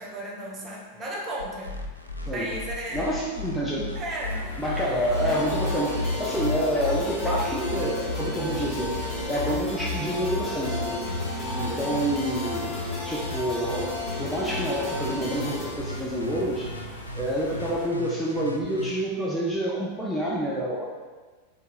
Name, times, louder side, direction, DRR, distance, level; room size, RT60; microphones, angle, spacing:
voice 1, 0.0-1.7 2.2-3.1 3.9-4.5 11.7-12.1, right 1 dB, 25° right, -2 dB, 0.9 m, -35 dB
sound 1, 1.4-18.9, left 2 dB, 90° left, 0.4 m, -34 dB
voice 2, 2.9-3.9 4.6-11.0 11.6-12.8 13.0-13.9 14.2-16.7 17.1-20.8, equal, ahead, -6 dB, 0.7 m, -28 dB
sound 2, 4.2-17.9, left 2 dB, 60° left, 0.9 m, -40 dB
sound 3, 5.1-15.7, left 2 dB, 15° left, 1.3 m, -34 dB
4.5 x 3.2 x 3.5 m, 1.3 s
figure-of-eight pair, 90°, 0 cm